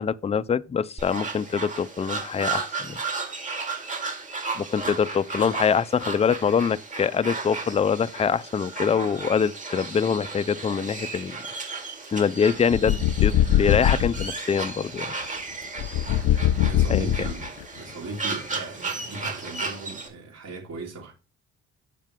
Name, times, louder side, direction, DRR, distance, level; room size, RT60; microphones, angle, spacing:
voice 1, 0.0-3.0 4.6-11.4 12.1-15.1 16.9-17.1, left 6 dB, 20° left, 0.4 m, -24 dB
sound 1, 1.0-20.1, right 4 dB, 25° right, 2.2 m, -34 dB
sound 2, 12.7-14.3 15.8-17.6, left 11 dB, 70° left, 0.6 m, -22 dB
voice 2, 16.6-21.1, right 3 dB, 55° right, 4.5 m, -37 dB
7.3 x 6.5 x 3.6 m
cardioid pair, 90°, 30 cm